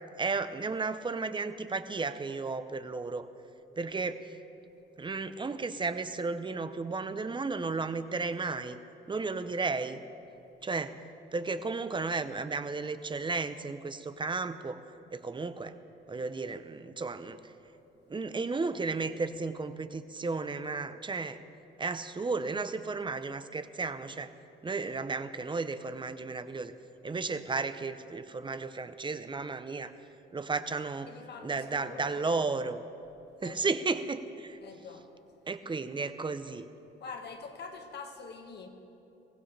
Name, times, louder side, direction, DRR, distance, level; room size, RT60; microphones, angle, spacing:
voice 1, 0.2-3.3 3.8-4.2 5.0-8.8 9.1-10.0 10.6-11.0 11.3-14.8 15.1-15.8 16.1-17.4 18.1-21.4 21.8-24.3 24.6-26.7 27.0-29.9 30.3-31.1 31.4-32.8 33.4-34.6 35.5-36.7, right 4 dB, 25° right, 11 dB, 0.8 m, -33 dB
voice 2, 31.1-32.4 33.4-33.6 34.6-35.1 37.0-38.7, left 4 dB, 60° left, 4 dB, 1.8 m, -45 dB
22.5 x 16.0 x 3.4 m, 3.0 s
cardioid pair, 90°, 20 cm